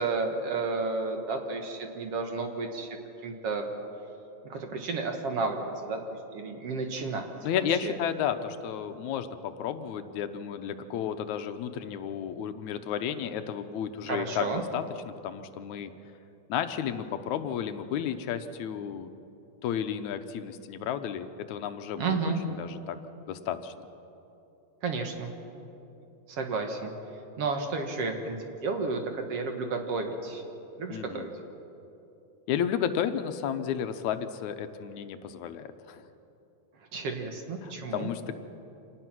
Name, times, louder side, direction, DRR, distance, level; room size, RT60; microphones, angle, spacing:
voice 1, 0.0-3.0 3.2-3.7 4.4-7.3 7.8-8.0 14.1-14.6 22.0-22.4 24.8-25.3 26.3-26.9 27.4-28.4 28.6-30.4 30.8-31.3 36.9-38.1, right 4 dB, 55° right, 4 dB, 2.3 m, -32 dB
voice 2, 7.4-15.9 16.5-19.1 19.6-22.2 22.5-23.0 23.3-23.7 30.9-31.3 32.5-36.0 37.6-38.4, left 8 dB, 75° left, 9 dB, 2.1 m, -32 dB
26.0 x 19.0 x 6.1 m, 2.9 s
omnidirectional pair, 3.4 m